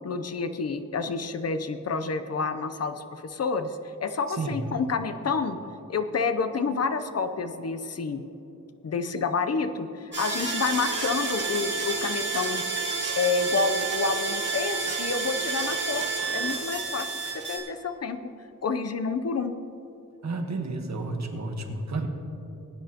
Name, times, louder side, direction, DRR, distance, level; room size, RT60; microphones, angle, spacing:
voice 1, 0.0-5.6 5.9-8.2 8.8-12.6 13.2-16.1 16.3-18.2 18.6-19.5, left 4 dB, 45° left, 9 dB, 0.7 m, -29 dB
sound 1, 10.1-17.6, right 4 dB, 35° right, 2.3 m, -30 dB
voice 2, 20.2-22.1, right 3 dB, 55° right, 4 dB, 1.4 m, -31 dB
20.5 x 9.8 x 2.9 m, 2.9 s
wide cardioid pair, 110°, 34 cm